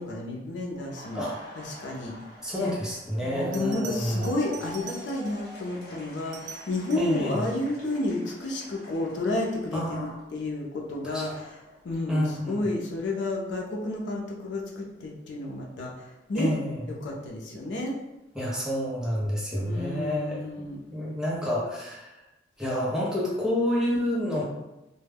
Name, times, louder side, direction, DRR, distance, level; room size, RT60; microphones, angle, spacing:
voice 1, 0.0-1.2 1.6-2.2 2.6-2.7 3.2-11.6 11.8-12.2 12.5-16.5 16.9-18.0 19.6-20.8, left 2 dB, 80° left, -1 dB, 0.5 m, -31 dB
Laughter, 0.7-10.6 10.9-12.9, equal, 55° left, 0.9 m, -47 dB
voice 2, 2.4-4.3 7.0-7.5 9.7-10.2 11.0-11.4 12.1-12.7 16.3-16.9 18.3-22.2 22.6-24.4, equal, 5° right, -6 dB, 0.6 m, -29 dB
Bell, 3.5-5.5 6.2-7.2 9.9-10.2, right 6 dB, 85° right, 0.4 m, -45 dB
2.2 x 2.1 x 3.3 m, 0.97 s
head